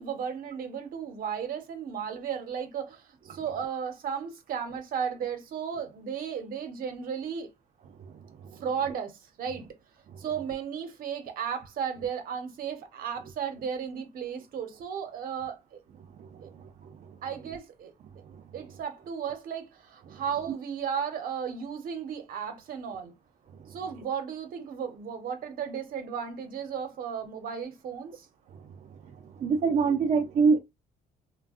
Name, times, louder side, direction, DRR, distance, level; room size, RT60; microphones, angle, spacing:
voice 1, 0.0-7.5 8.5-9.7 10.2-15.8 16.4-16.5 17.2-17.9 18.5-23.1 23.7-28.3, right 7 dB, 70° right, 0.8 m, -34 dB
voice 2, 8.0-8.6 10.1-10.2 16.2-17.1 20.1-20.2 23.6-23.8 28.5-30.6, right 5 dB, 55° right, 0.4 m, -28 dB
3.3 x 2.2 x 2.3 m
cardioid pair, 90°, 15 cm